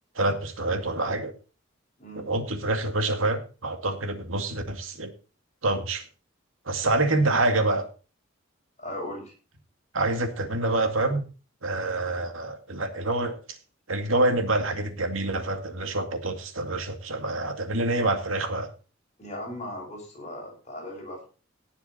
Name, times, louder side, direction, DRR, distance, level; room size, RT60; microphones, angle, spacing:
voice 1, 0.1-1.3 2.1-5.1 5.6-6.0 6.7-7.9 9.9-11.3 11.6-13.6 13.9-18.7, right 2 dB, 80° right, 7 dB, 2.3 m, -26 dB
voice 2, 8.8-9.3 19.2-21.3, left 1 dB, 35° left, 0 dB, 6.7 m, -37 dB
18.0 x 7.0 x 4.2 m, 0.34 s
head